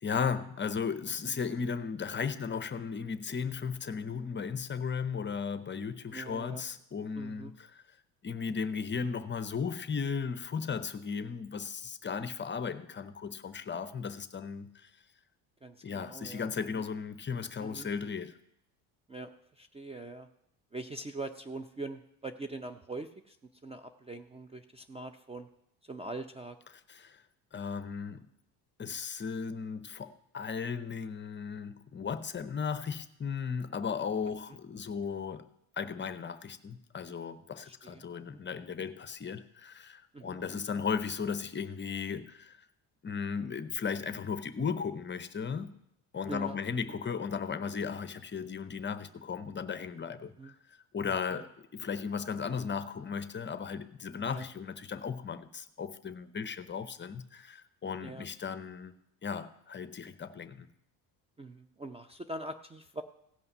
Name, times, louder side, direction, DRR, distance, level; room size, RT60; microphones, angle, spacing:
voice 1, 0.0-7.8 8.2-14.9 15.8-18.4 26.9-27.2 27.5-28.2 28.8-35.5 35.8-42.7 43.0-45.7 46.1-58.9 59.2-60.7, left 6 dB, 25° left, 0.7 m, -36 dB
voice 2, 6.1-6.6 7.1-7.5 15.6-16.8 17.6-17.9 19.1-20.3 20.7-23.4 23.6-25.5 25.8-26.6 37.6-38.0 38.3-38.4 40.1-40.4 46.3-46.6 46.9-47.0 50.4-50.5 51.0-51.5 54.3-54.5 58.0-58.3 61.4-63.0, right 2 dB, 15° right, 0.5 m, -43 dB
16.5 x 5.5 x 5.5 m
supercardioid pair, 80°, 45 cm